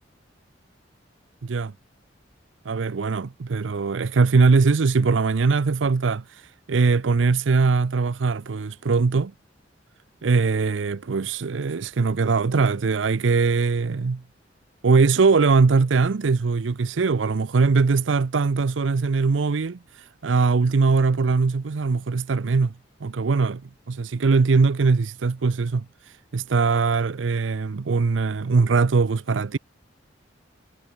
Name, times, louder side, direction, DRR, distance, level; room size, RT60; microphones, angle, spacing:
voice 1, 1.4-1.7 2.7-9.3 10.2-14.2 14.8-22.7 23.0-23.6 23.9-29.6, right 4 dB, 85° right, 0.6 m, -21 dB
head